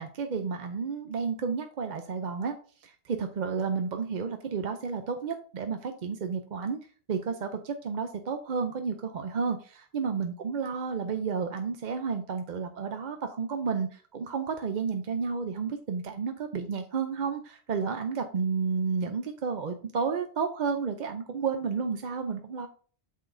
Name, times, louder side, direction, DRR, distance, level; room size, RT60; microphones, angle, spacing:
voice 1, 0.0-6.8 7.1-22.7, right 5 dB, 50° right, 6 dB, 0.7 m, -31 dB
8.3 x 6.0 x 2.6 m, 0.42 s
omnidirectional pair, 1.1 m